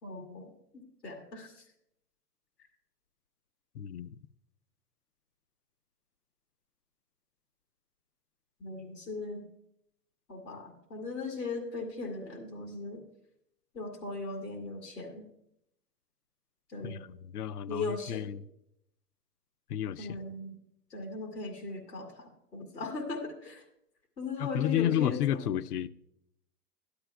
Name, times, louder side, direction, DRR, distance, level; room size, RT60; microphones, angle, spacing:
voice 1, 0.0-1.6 8.6-9.5 10.3-13.0 13.7-15.3 16.7-17.1 17.7-18.3 20.0-20.6 20.9-23.6 24.2-25.5, left 3 dB, 90° left, 2.2 m, -38 dB
voice 2, 3.8-4.2 16.8-18.4 19.7-20.2 24.4-25.9, left 11 dB, 70° left, 0.6 m, -31 dB
13.0 x 11.5 x 2.3 m
hypercardioid pair, 105°, 48 cm